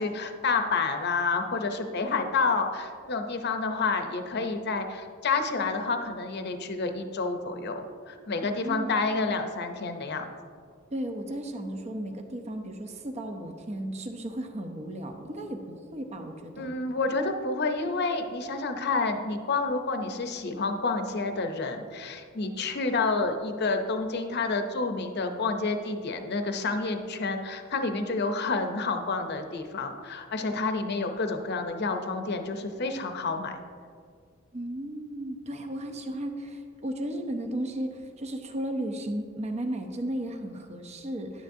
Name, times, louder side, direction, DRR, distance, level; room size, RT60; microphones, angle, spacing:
voice 1, 0.0-10.3 16.6-33.6, left 3 dB, 55° left, 6 dB, 0.7 m, -29 dB
voice 2, 8.4-8.9 10.9-16.8 34.5-41.4, right 1 dB, 35° right, 5 dB, 0.6 m, -35 dB
10.5 x 9.2 x 2.7 m, 2.1 s
head